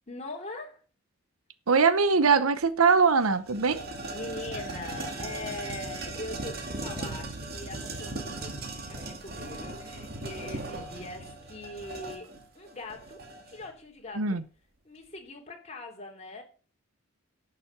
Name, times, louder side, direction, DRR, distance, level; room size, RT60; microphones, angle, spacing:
voice 1, 0.1-0.8 4.1-13.2 13.5-14.4 14.8-16.4, left 2 dB, 30° left, 2.9 m, -42 dB
voice 2, 1.7-3.8 14.2-14.4, right 5 dB, 85° right, 0.8 m, -22 dB
sound 1, 2.5-2.6 3.0-13.7, right 2 dB, 45° right, 2.2 m, -38 dB
11.5 x 7.5 x 5.9 m
head